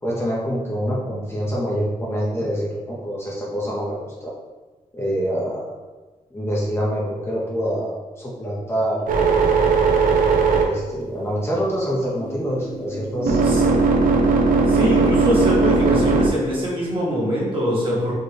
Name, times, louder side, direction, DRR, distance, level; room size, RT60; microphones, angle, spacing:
voice 1, 0.0-4.3 4.9-5.7 6.3-9.4 10.6-13.9, equal, 20° left, -5 dB, 0.8 m, -26 dB
sound 1, 9.1-11.7 12.2-16.3, right 4 dB, 85° right, 0.5 m, -18 dB
voice 2, 14.7-18.1, equal, 40° right, -6 dB, 1.4 m, -23 dB
4.3 x 3.0 x 3.3 m, 1.2 s
wide cardioid pair, 115°, 14 cm